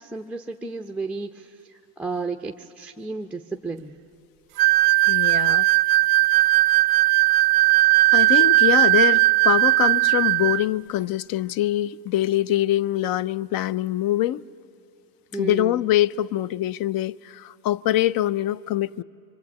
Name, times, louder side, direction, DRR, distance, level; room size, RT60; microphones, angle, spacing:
voice 1, 0.0-4.0 15.3-15.8, right 3 dB, 5° right, 0.6 m, -33 dB
sound 1, 4.6-10.7, right 19 dB, 60° right, 0.6 m, -18 dB
voice 2, 5.1-5.7 8.1-14.4 15.4-19.0, left 14 dB, 55° left, 0.5 m, -24 dB
25.0 x 24.5 x 8.3 m
cardioid pair, 125°, 42 cm